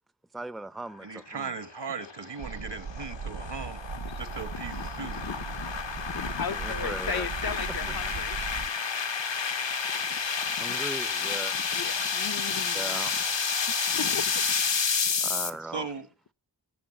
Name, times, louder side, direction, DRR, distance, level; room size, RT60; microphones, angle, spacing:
voice 1, 0.3-1.5 6.5-7.3 10.5-11.5 12.7-13.3 15.2-15.9, right 2 dB, ahead, 0.5 m, -38 dB
voice 2, 1.0-3.8 4.2-5.3 15.7-16.1, right 5 dB, 70° right, 1.6 m, -38 dB
sound 1, 1.6-15.5, left 5 dB, 85° left, 1.1 m, -30 dB
sound 2, 2.4-8.7, right 6 dB, 85° right, 0.7 m, -38 dB
voice 3, 4.0-8.4 9.9-10.2 10.5-10.8 11.5-13.0 13.9-14.8 15.0-15.1, left 6 dB, 55° left, 0.7 m, -38 dB
14.0 x 6.4 x 7.6 m
wide cardioid pair, 65°, 43 cm